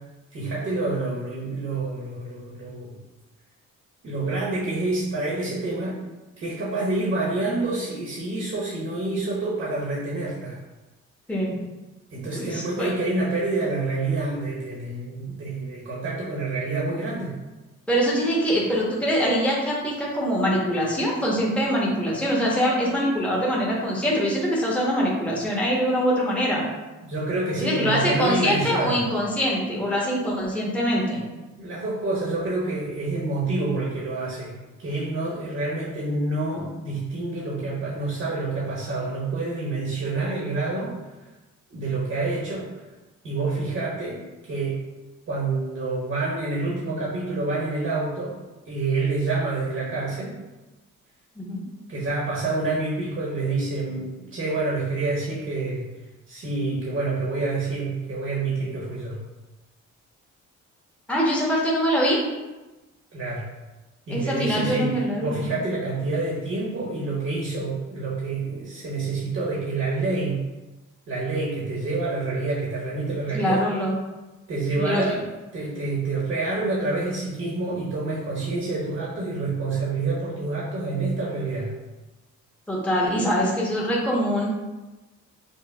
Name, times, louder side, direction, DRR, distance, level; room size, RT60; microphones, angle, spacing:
voice 1, 0.3-2.9 4.0-6.0 6.4-10.6 12.1-17.3 27.0-29.0 31.6-41.0 41.7-42.7 43.2-44.8 45.3-48.4 48.7-50.4 51.9-55.8 56.3-59.2 63.1-63.5 64.1-70.4 71.1-73.6 74.5-75.2 75.5-81.7, right 3 dB, 50° right, -5 dB, 1.0 m, -27 dB
voice 2, 12.3-12.9 17.9-26.6 27.6-31.2 51.4-51.7 61.1-62.2 64.1-65.4 73.3-74.0 74.8-75.0 82.7-84.5, equal, 5° left, -5 dB, 1.0 m, -23 dB
5.3 x 2.2 x 2.3 m, 1.1 s
cardioid pair, 90°, 30 cm